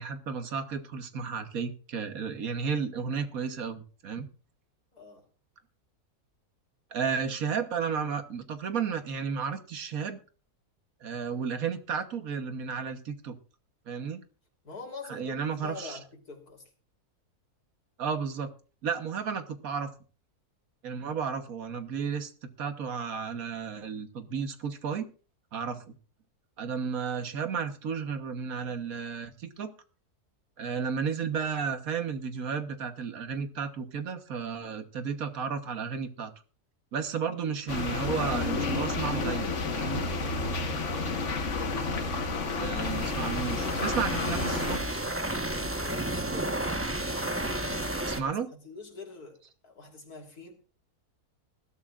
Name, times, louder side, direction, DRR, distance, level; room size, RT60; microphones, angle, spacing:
voice 1, 0.0-4.3 6.9-10.2 11.0-13.4 13.9-14.2 15.1-16.0 18.0-18.5 18.8-19.9 20.8-25.1 25.5-25.9 26.6-29.7 30.6-36.3 36.9-40.0 42.5-45.0 48.1-48.5, right 6 dB, 65° right, 8 dB, 1.6 m, -33 dB
voice 2, 4.9-5.2 14.6-16.6 45.8-46.7 47.5-48.3 48.6-49.4 49.6-50.5, left 4 dB, 75° left, 3 dB, 3.8 m, -44 dB
sound 1, 37.7-44.8, left 3 dB, 50° left, 1.7 m, -31 dB
sound 2, 42.8-48.2, right 1 dB, 10° right, 0.9 m, -32 dB
20.0 x 12.5 x 2.5 m, 0.37 s
omnidirectional pair, 1.6 m